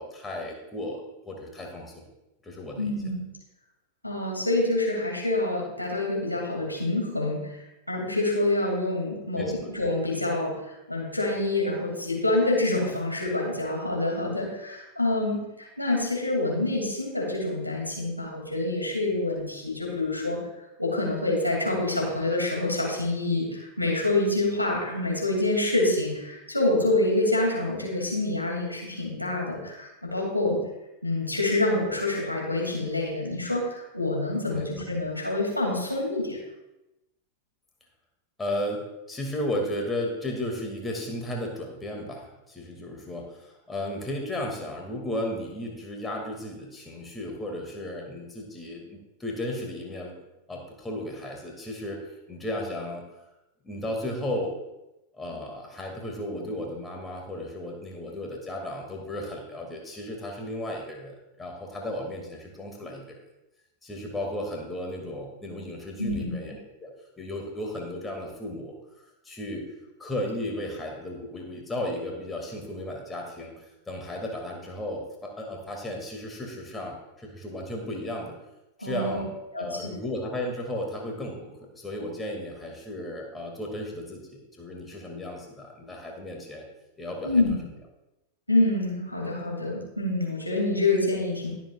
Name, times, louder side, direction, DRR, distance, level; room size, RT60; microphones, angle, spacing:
voice 1, 0.0-2.1 2.4-3.0 9.4-9.5 34.5-34.6 38.4-50.2 50.5-53.0 53.6-54.5 55.1-63.2 63.8-66.9 67.2-68.7 69.2-69.7 70.0-78.4 78.8-86.7 87.0-87.4, left 1 dB, 10° left, 0 dB, 2.2 m, -34 dB
voice 2, 2.8-3.2 4.0-20.4 20.8-30.6 31.0-36.4 66.0-66.3 78.8-79.2 79.5-79.8 87.2-87.6 88.5-91.5, left 2 dB, 85° left, -2 dB, 2.5 m, -27 dB
20.5 x 7.3 x 2.4 m, 0.93 s
figure-of-eight pair, 90°, 0 cm